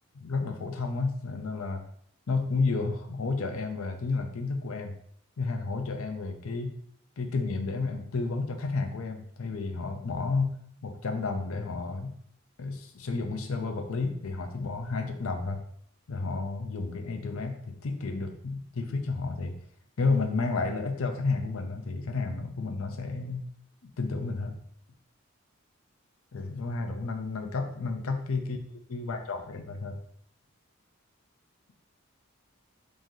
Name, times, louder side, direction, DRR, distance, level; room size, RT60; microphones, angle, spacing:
voice 1, 0.2-1.8 2.3-4.9 5.4-6.8 7.2-10.6 10.8-12.2 12.6-15.6 16.1-19.6 20.0-23.5 23.8-24.6 26.3-28.6 28.9-30.0, left 3 dB, 80° left, 6 dB, 0.5 m, -31 dB
3.1 x 2.6 x 3.7 m, 0.64 s
head